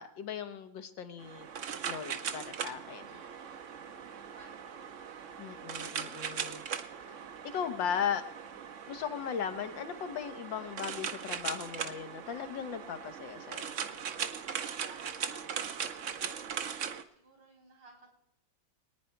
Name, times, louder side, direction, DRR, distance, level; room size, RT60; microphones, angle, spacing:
voice 1, 0.0-1.5 1.8-3.1 5.4-6.6 7.1-7.2 7.4-8.2 8.9-13.7, left 7 dB, 80° left, 9 dB, 1.8 m, -37 dB
sound 1, 1.2-17.0, right 7 dB, 55° right, 0.9 m, -40 dB
voice 2, 3.1-5.9 14.9-16.5 17.1-18.2, right 3 dB, 85° right, 2 dB, 4.3 m, -60 dB
24.5 x 9.4 x 4.5 m, 0.76 s
omnidirectional pair, 2.0 m